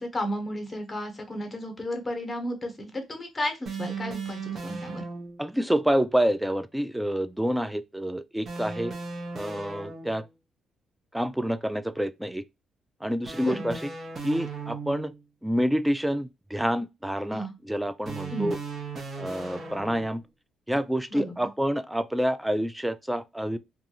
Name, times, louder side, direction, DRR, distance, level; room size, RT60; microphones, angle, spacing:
voice 1, 0.0-5.0 13.4-13.8 17.3-17.5 18.3-18.6 21.1-21.5, left 1 dB, 15° left, 0.9 m, -33 dB
sound 1, 3.7-5.5 8.5-10.3 13.2-15.2 18.1-20.3, right 4 dB, 50° right, 0.8 m, -37 dB
voice 2, 5.4-8.9 9.3-10.2 11.1-12.4 13.0-13.9 14.2-15.1 15.4-18.6 19.2-20.2 20.7-23.6, equal, 5° right, 0.3 m, -28 dB
2.5 x 2.3 x 2.8 m
cardioid pair, 90°, 0 cm